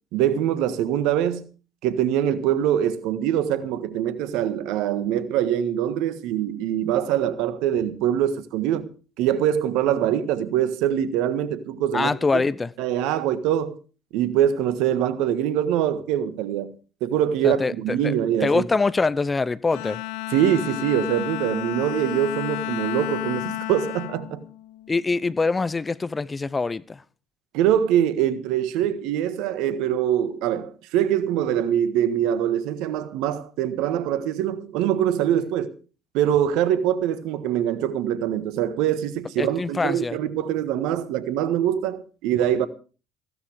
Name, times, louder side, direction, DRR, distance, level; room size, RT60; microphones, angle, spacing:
voice 1, 0.1-1.4 1.8-8.9 9.2-12.4 12.8-13.8 14.1-16.7 17.0-18.7 20.3-24.4 27.5-35.7 36.1-42.7, right 10 dB, 70° right, 1.5 m, -23 dB
voice 2, 11.9-12.7 17.4-17.7 18.0-18.1 18.4-20.0 24.9-27.0 35.4-35.5 39.4-40.2, left 3 dB, 25° left, 0.8 m, -24 dB
Bowed string instrument, 19.7-25.2, left 14 dB, 75° left, 1.2 m, -32 dB
16.0 x 13.0 x 5.0 m
hypercardioid pair, 60°, 0 cm